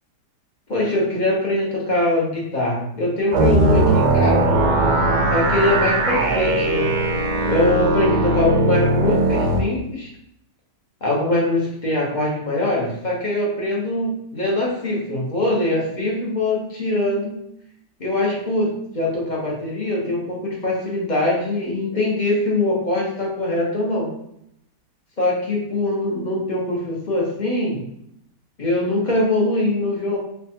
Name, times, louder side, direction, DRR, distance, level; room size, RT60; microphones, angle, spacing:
voice 1, 0.7-4.5 5.3-6.9 7.5-10.1 11.0-17.3 18.0-24.1 25.2-27.8 28.6-30.2, left 1 dB, 35° left, -4 dB, 0.9 m, -22 dB
sound 1, 3.3-9.6, right 2 dB, 85° right, 1.4 m, -19 dB
3.4 x 2.4 x 4.3 m, 0.75 s
omnidirectional pair, 1.8 m